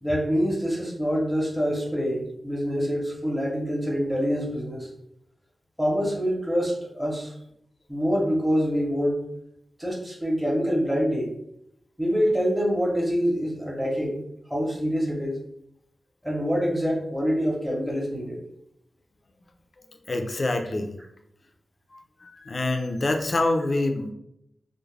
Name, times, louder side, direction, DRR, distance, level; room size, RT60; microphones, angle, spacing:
voice 1, 0.0-4.9 5.8-7.3 7.9-9.2 9.8-11.3 12.0-15.4 16.2-18.4, equal, 5° right, -4 dB, 0.7 m, -25 dB
voice 2, 20.1-20.9 21.9-24.1, left 2 dB, 45° left, 5 dB, 0.4 m, -26 dB
2.3 x 2.0 x 3.1 m, 0.77 s
wide cardioid pair, 70°, 0 cm